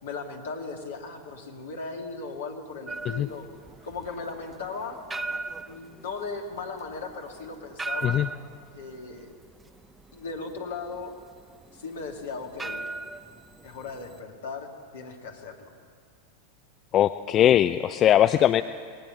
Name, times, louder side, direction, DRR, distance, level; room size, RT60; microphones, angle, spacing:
voice 1, 0.0-3.5 3.8-8.2 8.7-9.4 10.1-11.2 11.7-12.8 13.6-15.7, left 4 dB, 60° left, 3 dB, 2.4 m, -37 dB
sound 1, 2.9-14.2, right 3 dB, 10° right, 0.7 m, -38 dB
voice 2, 16.9-18.6, left 11 dB, 30° left, 12 dB, 0.4 m, -20 dB
19.5 x 19.5 x 7.1 m, 2.1 s
figure-of-eight pair, 90°, 0 cm